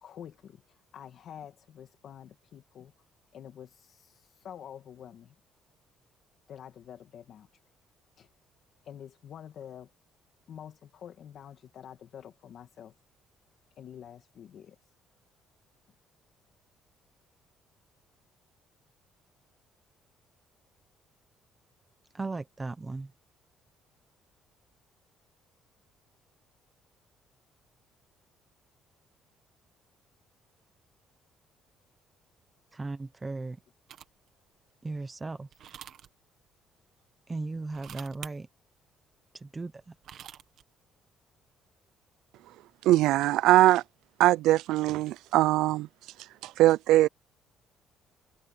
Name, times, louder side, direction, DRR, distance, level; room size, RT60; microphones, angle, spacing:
voice 1, 0.0-2.9 3.3-5.3 6.5-7.5 8.2-8.3 8.8-9.9 10.5-12.9 13.8-14.9, left 9 dB, 45° left, 2.2 m, -47 dB
voice 2, 22.1-23.1 32.7-33.6 34.8-35.5 37.3-38.5 39.3-40.0, right 3 dB, 15° right, 1.0 m, -36 dB
sound 1, 33.9-34.3 35.5-36.1 37.6-38.3 39.8-40.6, right 10 dB, 50° right, 1.7 m, -46 dB
voice 3, 42.8-43.8 44.2-45.9 46.4-47.1, right 15 dB, 80° right, 0.4 m, -21 dB
cardioid pair, 180°, 0 cm